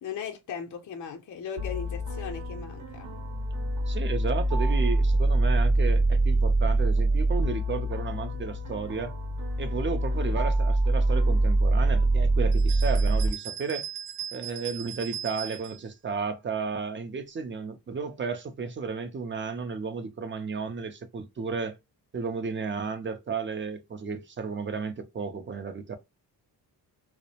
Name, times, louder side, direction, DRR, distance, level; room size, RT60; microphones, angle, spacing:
voice 1, 0.0-3.1, left 7 dB, 45° left, 0.6 m, -37 dB
sound 1, 1.6-13.3, right 2 dB, 45° right, 0.9 m, -25 dB
voice 2, 3.9-9.1 9.6-13.9 14.3-21.8 22.1-26.0, right 5 dB, 30° right, 0.5 m, -33 dB
sound 2, 12.5-15.8, right 8 dB, 75° right, 0.8 m, -38 dB
2.4 x 2.1 x 2.8 m
cardioid pair, 100°, 41 cm